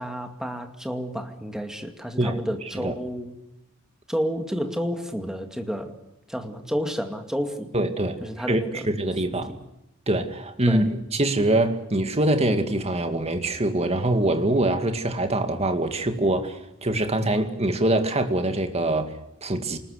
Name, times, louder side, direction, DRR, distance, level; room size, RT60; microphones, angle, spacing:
voice 1, 0.0-3.4 4.1-5.9 6.3-7.7 8.2-8.9 9.5-9.6 10.7-10.9, equal, 5° right, 2.3 m, -30 dB
voice 2, 7.7-8.2 8.5-9.5 10.1-10.8 11.1-19.8, right 1 dB, 30° right, 2.2 m, -24 dB
28.0 x 20.0 x 6.6 m
head